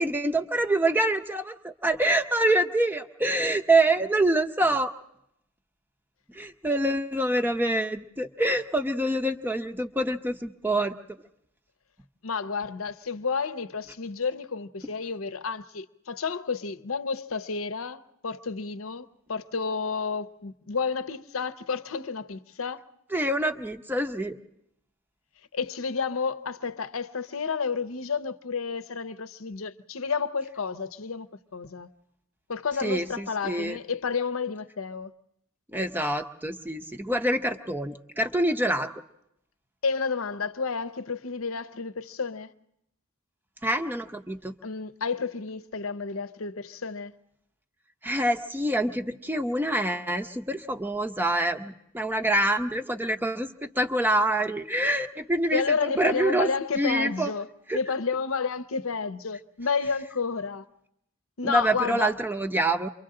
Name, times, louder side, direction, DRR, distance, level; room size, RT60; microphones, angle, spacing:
voice 1, 0.0-4.9 6.3-11.0 23.1-24.4 32.8-33.8 35.7-38.9 43.6-44.5 48.0-55.6 56.0-56.5 56.7-57.3 57.7-57.8 61.4-62.9, right 1 dB, 10° right, 0.7 m, -26 dB
voice 2, 12.2-22.9 25.5-31.9 32.5-35.1 39.8-42.5 44.6-47.1 55.5-57.5 57.7-60.7 61.4-62.1, left 5 dB, 75° left, 0.7 m, -31 dB
28.5 x 24.0 x 3.8 m
head